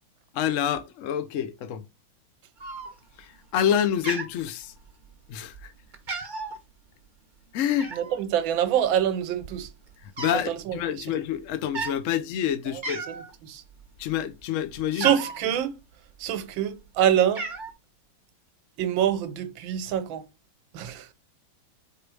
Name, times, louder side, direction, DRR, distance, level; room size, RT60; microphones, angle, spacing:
voice 1, 0.3-1.9 3.2-4.7 5.3-5.7 7.5-7.9 10.0-13.0 14.0-15.1, left 9 dB, 80° left, 0.7 m, -27 dB
Cat, 2.6-3.2 3.6-3.8 4.0-5.1 5.5-5.7 5.9-6.6 7.8-8.2 9.0-9.1 9.3-10.5 10.8-11.0 11.6-12.0 12.5-12.6 12.8-13.3 13.7-15.4 16.2-16.8 17.1-17.7, right 3 dB, 30° right, 1.1 m, -34 dB
voice 2, 7.9-9.7 10.5-10.8 13.1-13.6 15.0-15.8 16.2-17.5 18.8-20.2 20.7-21.1, right 10 dB, 75° right, 1.6 m, -25 dB
4.7 x 4.4 x 4.7 m
omnidirectional pair, 2.2 m